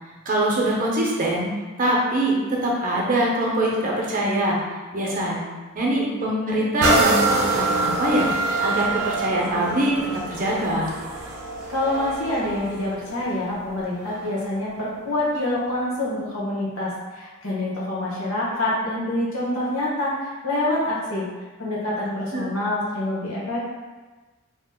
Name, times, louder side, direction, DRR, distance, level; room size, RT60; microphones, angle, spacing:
voice 1, 0.3-1.5 1.8-4.6 4.9-9.9 10.3-10.9 22.3-22.5, right 1 dB, 40° right, -3 dB, 0.6 m, -23 dB
sound 1, 6.8-14.4 15.0-15.1, right 3 dB, 85° right, 0.5 m, -26 dB
voice 2, 11.7-21.3 21.6-23.7, left 1 dB, 75° left, -6 dB, 1.0 m, -26 dB
2.8 x 2.0 x 3.5 m, 1.3 s
head